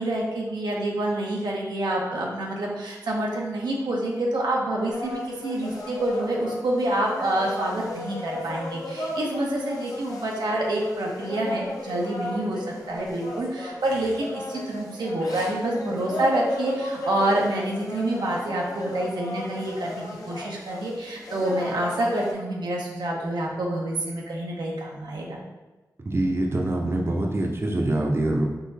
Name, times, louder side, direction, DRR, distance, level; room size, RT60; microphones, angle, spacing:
voice 1, 0.0-25.4, right 1 dB, 85° right, -2 dB, 0.6 m, -27 dB
sound 1, 4.9-22.3, left 1 dB, 60° left, 0.7 m, -34 dB
voice 2, 26.0-28.4, right 1 dB, 35° right, 0 dB, 0.6 m, -24 dB
3.7 x 3.0 x 2.7 m, 1.1 s
cardioid pair, 45°, 7 cm